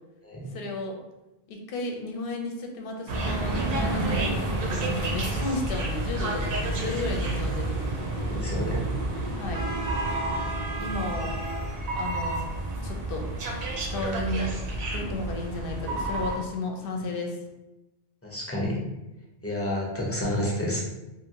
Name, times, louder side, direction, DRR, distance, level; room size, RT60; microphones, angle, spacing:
voice 1, 0.5-1.0 1.5-7.7 9.4-9.6 10.8-11.4 11.9-12.5 12.8-13.3 13.8-14.5 14.9-17.4, left 2 dB, 65° left, 2 dB, 0.7 m, -33 dB
sound 1, 3.1-16.4, right 2 dB, 70° right, 0.8 m, -29 dB
voice 2, 8.2-8.8 15.8-16.0 18.2-18.8 19.4-20.8, left 1 dB, 20° left, -4 dB, 0.5 m, -30 dB
2.7 x 2.6 x 2.8 m, 0.99 s
omnidirectional pair, 1.0 m